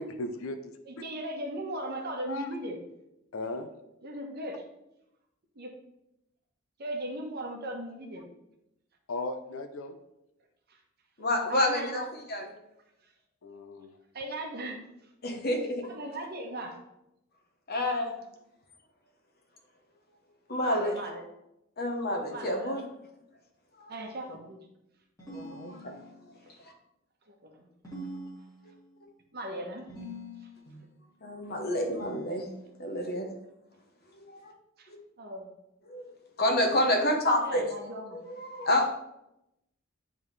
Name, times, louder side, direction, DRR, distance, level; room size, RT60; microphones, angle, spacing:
voice 1, 0.0-0.7 2.3-2.5 3.3-3.7 9.1-9.9 13.4-13.9, left 2 dB, 75° left, 8 dB, 0.6 m, -36 dB
voice 2, 0.9-2.8 4.0-4.6 5.5-5.7 6.8-8.2 10.7-10.8 11.5-12.1 14.1-14.8 15.8-16.8 20.6-21.2 22.3-22.8 23.9-24.6 26.5-26.6 27.3-27.7 29.3-29.9 34.8-34.9 35.2-35.5 37.3-38.2, right 1 dB, 50° right, 2 dB, 1.0 m, -37 dB
voice 3, 11.2-12.0 12.3-12.5 15.2-15.9 17.7-18.1 20.5-21.0 21.8-22.8 23.7-23.9 25.3-25.9 26.6-26.7 30.7-30.8 31.2-32.5 32.8-33.3 34.2-34.5 34.9-35.0 35.9-36.0 36.4-37.7 38.1-38.9, left 1 dB, 50° left, 3 dB, 1.0 m, -29 dB
sound 1, 25.2-26.4 27.8-29.0 29.9-30.8 32.0-33.0, equal, 20° left, 2.2 m, -45 dB
9.7 x 3.6 x 3.2 m, 0.87 s
head